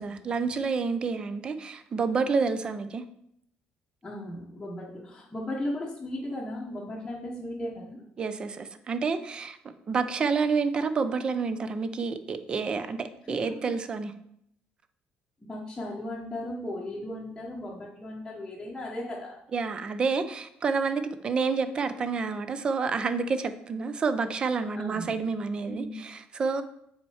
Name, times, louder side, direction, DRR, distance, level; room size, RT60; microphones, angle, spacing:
voice 1, 0.0-3.0 8.2-9.6 9.9-14.1 19.5-26.6, right 4 dB, 30° right, 11 dB, 0.5 m, -29 dB
voice 2, 4.0-8.0 13.2-13.7 15.4-19.4 24.7-25.2 25.7-26.0, left 1 dB, 10° left, -5 dB, 0.9 m, -36 dB
7.1 x 4.3 x 4.8 m, 0.73 s
cardioid pair, 165°, 3 cm